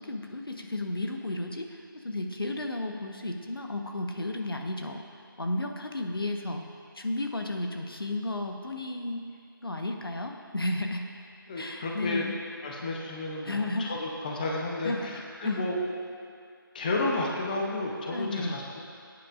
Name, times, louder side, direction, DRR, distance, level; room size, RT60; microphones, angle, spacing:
voice 1, 0.0-5.0 5.4-6.6 6.9-9.3 9.6-11.1 11.6-12.4 13.4-13.9 14.8-15.6 18.1-18.6, left 2 dB, 80° left, 3 dB, 1.1 m, -33 dB
voice 2, 11.5-12.2 12.6-15.8 16.7-18.8, left 2 dB, 20° left, -1 dB, 0.8 m, -32 dB
17.0 x 9.4 x 2.5 m, 2.4 s
figure-of-eight pair, 160°, 12 cm